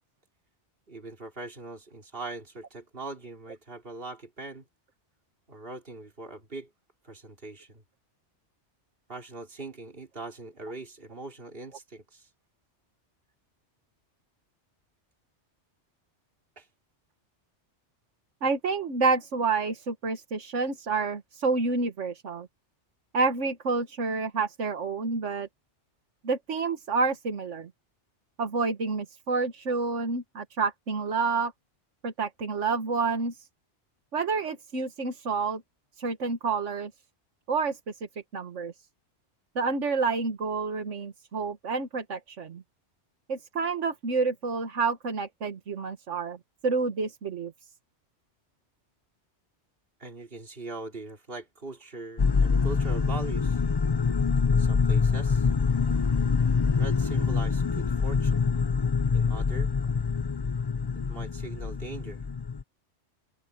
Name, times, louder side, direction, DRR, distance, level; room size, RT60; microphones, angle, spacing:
voice 1, 0.9-4.6 5.5-6.7 7.0-7.8 9.1-12.3 16.6-16.7 50.0-53.6 54.5-55.5 56.8-58.5 59.1-59.7 61.1-62.2, right 2 dB, 50° right, 3.4 m, -41 dB
voice 2, 18.4-22.5 23.1-25.5 26.2-27.7 28.4-31.5 32.0-33.5 34.1-35.6 36.0-36.9 37.5-38.1 38.3-38.7 39.6-42.6 43.3-46.4 46.6-47.5, right 4 dB, 85° right, 1.8 m, -29 dB
sound 1, 52.2-62.6, left 5 dB, 35° left, 0.4 m, -25 dB
open air
omnidirectional pair, 1.2 m